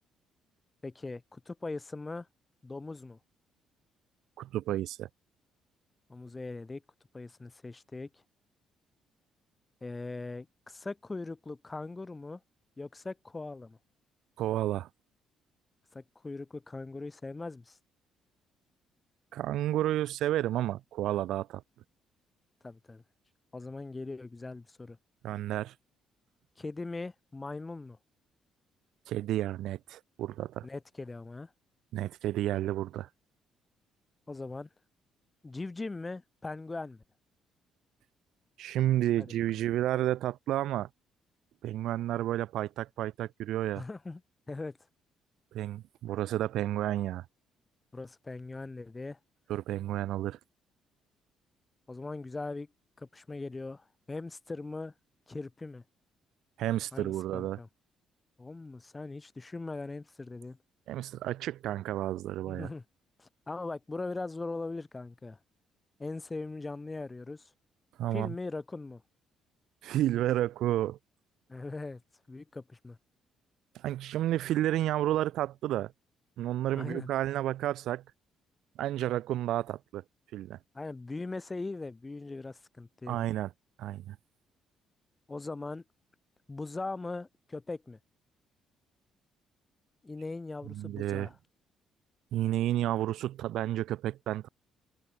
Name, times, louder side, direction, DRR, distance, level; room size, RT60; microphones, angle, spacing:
voice 1, 0.8-2.3 2.6-3.2 6.1-6.8 7.1-8.1 9.8-12.4 12.8-13.8 15.9-17.8 22.6-23.0 23.5-25.0 26.6-28.0 30.6-31.5 34.3-34.7 35.4-37.0 39.2-39.3 43.8-44.2 44.5-44.8 47.9-49.2 51.9-52.7 53.0-54.9 55.3-55.8 56.9-57.7 58.4-60.6 62.5-62.8 63.2-65.4 66.0-67.4 68.1-69.0 71.5-72.0 72.3-73.0 76.8-77.1 80.7-83.3 85.3-85.8 86.5-88.0 90.0-91.3, left 3 dB, 15° left, 1.3 m, -40 dB
voice 2, 4.4-5.1 14.4-14.9 19.3-21.6 25.2-25.7 29.1-30.7 31.9-33.1 38.6-40.9 41.6-43.8 45.5-47.2 49.5-50.4 56.6-57.6 60.9-62.7 68.0-68.3 69.8-71.0 73.7-75.9 76.4-78.0 78.8-80.0 80.3-80.6 83.1-83.5 83.8-84.2 90.7-91.3 92.3-94.5, right 13 dB, 75° right, 0.4 m, -31 dB
cardioid pair, 160°, 0 cm